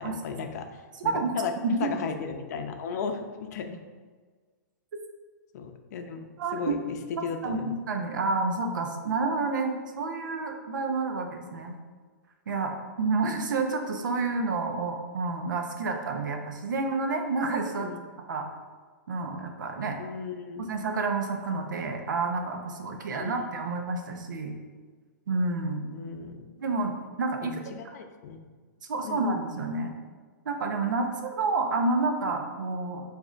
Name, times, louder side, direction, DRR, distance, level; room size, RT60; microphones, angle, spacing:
voice 1, 0.0-1.5 1.8-3.8 5.5-7.0 7.2-7.8 17.8-18.0 20.0-20.7 23.2-23.3 23.6-23.7 25.9-26.5 27.4-28.4 29.0-29.2, left 5 dB, 60° left, 6 dB, 0.5 m, -36 dB
voice 2, 1.0-1.4 1.6-1.8 6.4-6.7 7.2-11.7 12.5-17.9 18.3-18.5 19.1-20.0 20.6-24.5 25.3-26.0 26.6-27.6 28.9-29.9 30.5-33.0, right 3 dB, 80° right, 4 dB, 0.7 m, -29 dB
7.0 x 2.7 x 2.5 m, 1.5 s
hypercardioid pair, 135°, 10 cm